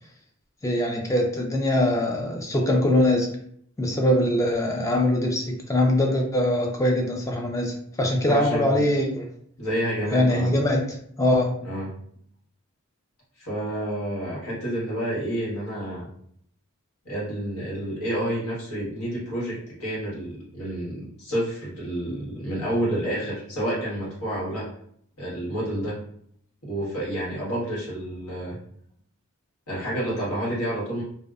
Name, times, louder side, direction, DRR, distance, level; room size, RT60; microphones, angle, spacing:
voice 1, 0.6-3.3 3.8-9.3 10.1-11.6, left 1 dB, 15° left, 1 dB, 0.3 m, -22 dB
voice 2, 8.3-8.8 9.6-10.5 11.6-11.9 13.4-16.1 17.0-24.7 25.2-26.0 26.6-28.6 29.7-31.0, right 1 dB, 80° left, -7 dB, 1.4 m, -29 dB
2.6 x 2.1 x 2.4 m, 0.66 s
head